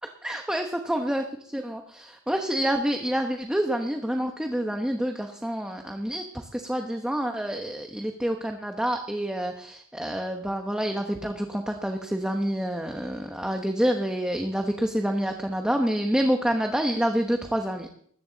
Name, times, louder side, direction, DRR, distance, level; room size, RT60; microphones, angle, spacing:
voice 1, 0.2-17.9, equal, 5° right, 3 dB, 1.1 m, -28 dB
20.0 x 14.5 x 4.0 m, 0.62 s
head